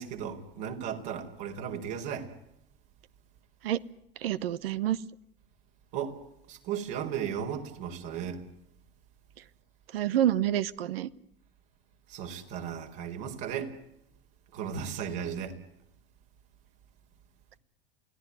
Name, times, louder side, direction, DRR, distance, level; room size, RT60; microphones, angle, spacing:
voice 1, 0.0-2.3 5.9-6.1 6.5-8.4 12.1-13.7 14.5-15.6, right 8 dB, 60° right, 4.4 m, -35 dB
voice 2, 4.2-5.0 9.9-11.1, right 12 dB, 75° right, 1.1 m, -27 dB
29.0 x 17.5 x 9.6 m
hypercardioid pair, 85°, 29 cm